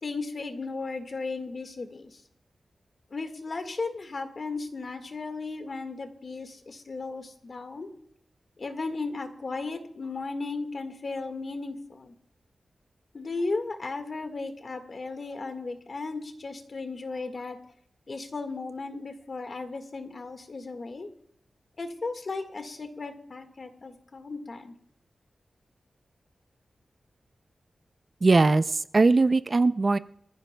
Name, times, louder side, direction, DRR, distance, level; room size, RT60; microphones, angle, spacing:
voice 1, 0.0-2.2 3.1-7.9 8.6-12.1 13.1-17.6 18.1-21.1 21.8-24.7, left 3 dB, 50° left, 6 dB, 1.7 m, -35 dB
voice 2, 28.2-30.0, right 3 dB, 40° right, 13 dB, 0.5 m, -20 dB
25.5 x 15.0 x 2.3 m, 0.72 s
wide cardioid pair, 105°, 0 cm